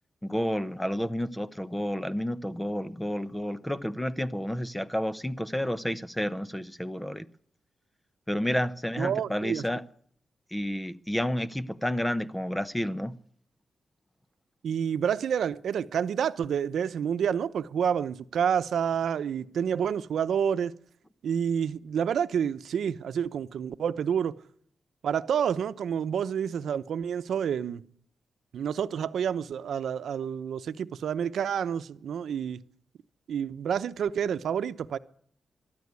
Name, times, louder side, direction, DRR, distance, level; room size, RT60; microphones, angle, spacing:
voice 1, 0.2-7.3 8.3-9.8 10.5-13.1, equal, 5° left, 0.8 m, -30 dB
voice 2, 9.0-9.6 14.6-20.7 21.2-24.3 25.0-27.8 28.5-32.6 33.3-35.0, right 8 dB, 85° right, 0.8 m, -29 dB
23.5 x 12.0 x 9.6 m
wide cardioid pair, 150°, 0 cm